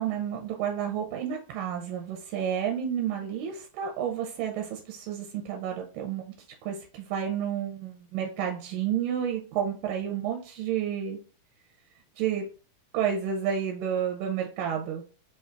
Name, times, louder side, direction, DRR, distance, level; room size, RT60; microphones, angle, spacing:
voice 1, 0.0-6.3 6.7-11.2 12.2-12.5 12.9-15.0, right 8 dB, 80° right, 2 dB, 2.1 m, -30 dB
5.8 x 2.6 x 2.3 m, 0.36 s
omnidirectional pair, 4.0 m